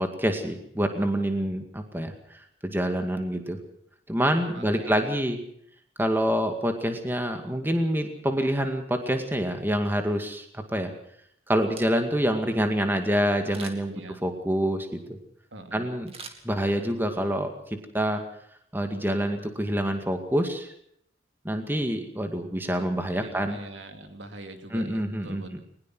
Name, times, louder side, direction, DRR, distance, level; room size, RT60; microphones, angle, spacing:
voice 1, 0.0-2.1 2.6-3.6 4.1-5.4 6.0-10.9 11.5-13.9 14.2-15.2 15.7-16.1 16.4-18.2 18.7-20.7 21.4-23.6 24.7-25.6, equal, 10° right, 5 dB, 2.1 m, -26 dB
voice 2, 4.5-5.1 13.9-14.2 15.5-15.9 23.0-25.6, right 2 dB, 70° right, 6 dB, 2.7 m, -43 dB
Camera, 11.8-12.3 13.5-14.0 16.1-17.0 17.4-17.5, right 5 dB, 30° right, 2.5 m, -45 dB
21.5 x 20.0 x 6.2 m, 0.68 s
head